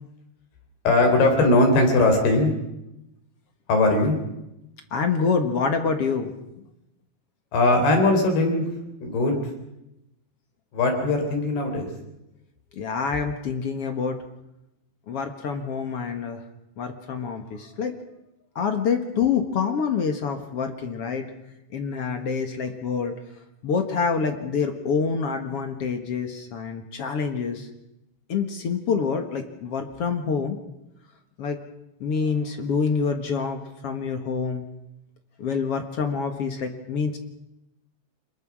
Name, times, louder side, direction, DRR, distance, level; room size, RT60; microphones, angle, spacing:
voice 1, 0.8-2.5 3.7-4.2 7.5-8.7 9.0-9.5 10.7-11.9, left 2 dB, 85° left, 4 dB, 6.0 m, -20 dB
voice 2, 4.9-6.3 12.8-14.2 15.1-16.4 16.8-17.9 18.6-21.2 21.7-23.1 23.6-27.7 28.3-30.6 31.4-31.6 32.0-34.6 35.4-37.2, left 5 dB, 55° left, 6 dB, 1.8 m, -26 dB
26.0 x 21.0 x 6.2 m, 0.89 s
omnidirectional pair, 4.4 m